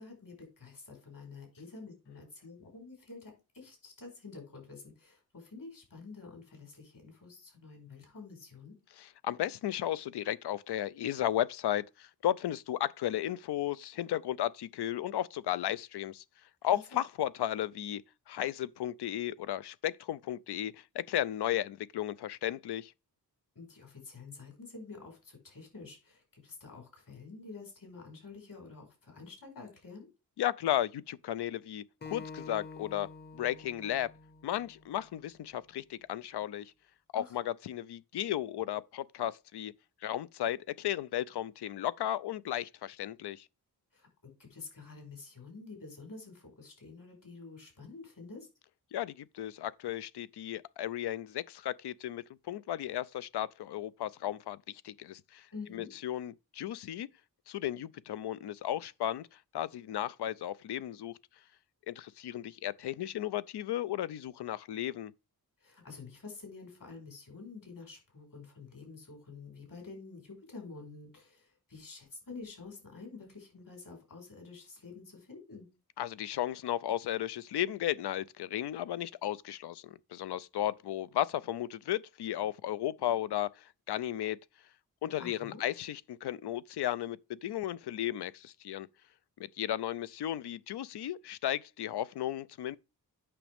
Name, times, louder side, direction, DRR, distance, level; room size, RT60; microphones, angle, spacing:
voice 1, 0.0-8.7 16.7-17.0 23.5-30.1 37.1-37.3 43.9-44.1 44.4-48.5 55.5-55.9 65.6-75.7 85.2-85.6, left 4 dB, 55° left, 4.9 m, -48 dB
voice 2, 9.0-16.2 16.6-18.0 18.3-22.9 30.4-33.1 33.3-34.1 34.4-36.7 37.1-39.7 40.0-43.5 48.9-57.1 57.5-61.2 61.9-65.1 76.0-84.4 85.0-88.9 89.4-92.8, left 12 dB, 90° left, 0.5 m, -34 dB
Acoustic guitar, 32.0-35.3, left 4 dB, 25° left, 0.8 m, -48 dB
8.7 x 6.0 x 3.5 m
wide cardioid pair, 115°, 39 cm